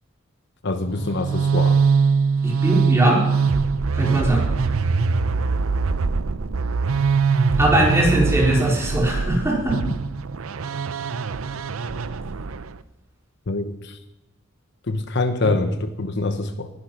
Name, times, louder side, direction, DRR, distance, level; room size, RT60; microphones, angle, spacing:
voice 1, 0.6-1.8 13.5-14.0 14.9-16.7, left 2 dB, 55° left, 9 dB, 1.0 m, -25 dB
sound 1, 0.9-12.8, right 5 dB, 80° right, 0.6 m, -22 dB
voice 2, 2.4-3.2 3.9-4.4 7.6-9.8, right 1 dB, 15° right, -3 dB, 4.3 m, -20 dB
19.0 x 11.0 x 5.9 m, 0.98 s
head